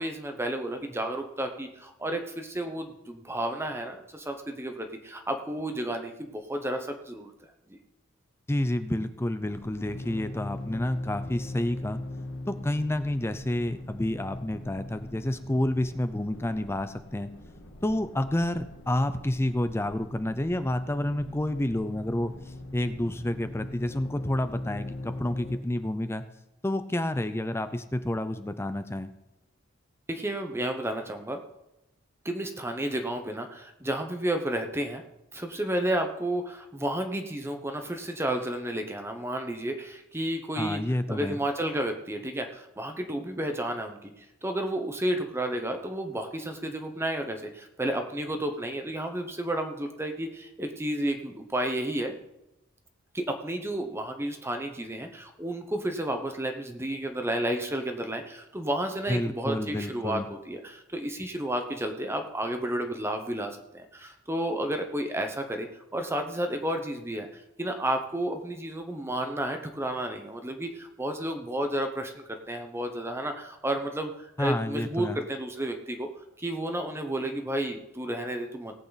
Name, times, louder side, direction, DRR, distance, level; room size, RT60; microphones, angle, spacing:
voice 1, 0.0-7.3 30.1-31.4 32.2-35.0 35.3-40.8 41.1-52.1 53.1-67.3 67.6-76.1 76.4-78.7, right 1 dB, 10° right, 5 dB, 0.9 m, -32 dB
voice 2, 8.5-12.0 12.5-17.3 17.8-22.3 22.7-26.3 26.6-29.1 40.6-41.4 59.1-60.2 74.4-75.2, left 1 dB, 10° left, 10 dB, 0.5 m, -29 dB
sound 1, 9.4-25.6, left 1 dB, 65° left, 1.6 m, -41 dB
18.0 x 8.3 x 4.1 m, 0.89 s
head